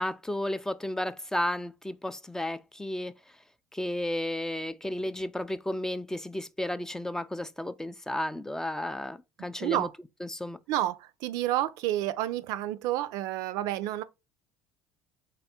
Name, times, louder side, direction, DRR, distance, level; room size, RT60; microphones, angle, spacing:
voice 1, 0.0-3.1 3.7-9.9 10.2-10.6, left 1 dB, 10° left, 0.3 m, -33 dB
voice 2, 9.6-9.9 10.7-14.0, right 13 dB, 70° right, 0.4 m, -29 dB
3.5 x 2.3 x 4.2 m
hypercardioid pair, 75°, 7 cm